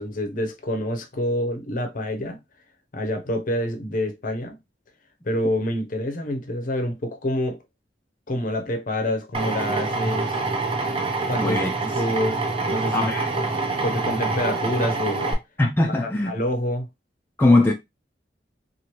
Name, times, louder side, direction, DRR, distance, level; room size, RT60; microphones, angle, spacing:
voice 1, 0.0-2.4 2.9-4.6 5.2-7.6 8.3-10.4 11.3-11.6 12.0-12.4 12.7-13.1 13.4-13.5 13.8-15.4 16.3-16.9, left 1 dB, 50° left, 0.7 m, -27 dB
Drill, 9.3-15.3, right 3 dB, 30° right, 0.6 m, -26 dB
voice 2, 11.4-11.7 12.9-13.3 15.6-16.3 17.4-17.7, left 2 dB, 10° left, 0.4 m, -20 dB
3.0 x 2.5 x 2.9 m
head